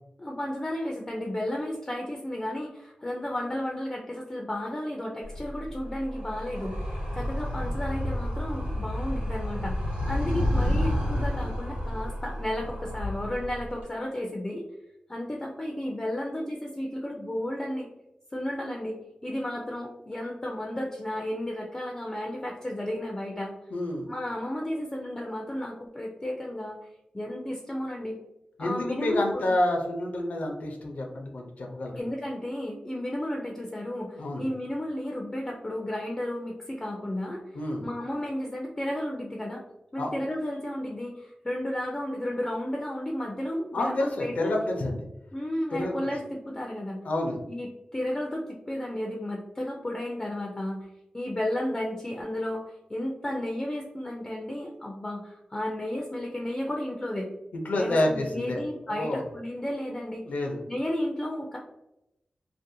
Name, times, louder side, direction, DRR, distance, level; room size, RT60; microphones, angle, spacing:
voice 1, 0.2-14.7 15.1-17.9 18.3-18.9 19.2-23.5 24.1-28.2 28.6-29.5 32.0-37.4 37.8-39.6 39.9-43.9 44.2-44.5 45.3-47.0 47.5-50.9 51.1-57.3 57.8-60.2 60.7-61.6, left 1 dB, 20° left, 0 dB, 0.3 m, -33 dB
Animal, 5.2-13.8, left 1 dB, 70° right, 1.0 m, -30 dB
voice 2, 23.7-24.1 28.6-32.0 34.2-34.5 37.5-37.8 40.0-40.1 43.7-45.0 45.8-46.1 47.0-47.4 57.5-59.2 60.2-60.6, left 1 dB, 80° left, 1 dB, 0.5 m, -28 dB
2.5 x 2.1 x 2.6 m, 0.88 s
wide cardioid pair, 110°, 3 cm